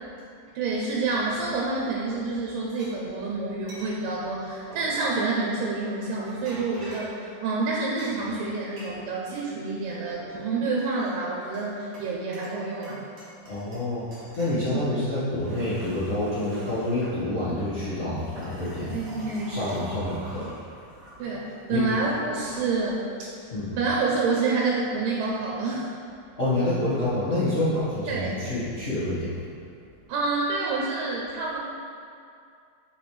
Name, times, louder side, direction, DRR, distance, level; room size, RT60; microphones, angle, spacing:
voice 1, 0.6-13.0 18.9-20.0 21.2-23.4 23.8-25.9 28.1-28.4 30.1-31.6, right 3 dB, 90° right, -3 dB, 2.3 m, -28 dB
sound 1, 2.8-2.9 3.7-3.9 4.7-5.2 6.0-7.2 8.0-9.4 9.8-10.4 10.8-11.7 11.9-12.6 12.8-13.9 14.1-14.6 15.1-17.2 17.9-21.4 22.2-22.5, right 1 dB, 50° right, 1.0 m, -45 dB
voice 2, 13.4-19.0 19.5-20.5 21.7-21.8 23.5-23.7 26.3-29.4, left 1 dB, 85° left, -14 dB, 0.5 m, -27 dB
6.0 x 5.1 x 3.3 m, 2.4 s
omnidirectional pair, 3.8 m